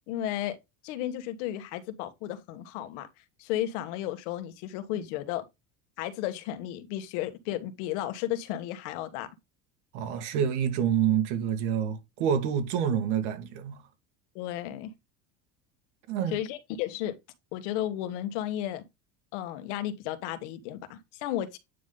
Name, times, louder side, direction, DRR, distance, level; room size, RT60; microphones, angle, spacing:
voice 1, 0.1-0.6 0.8-3.1 3.4-5.4 6.0-9.3 14.3-14.9 16.3-17.1 17.5-18.8 19.3-21.6, left 12 dB, 85° left, 1.4 m, -33 dB
voice 2, 9.9-13.8 16.1-16.4, right 8 dB, 80° right, 2.2 m, -27 dB
9.2 x 3.9 x 3.8 m
cardioid pair, 150°, 34 cm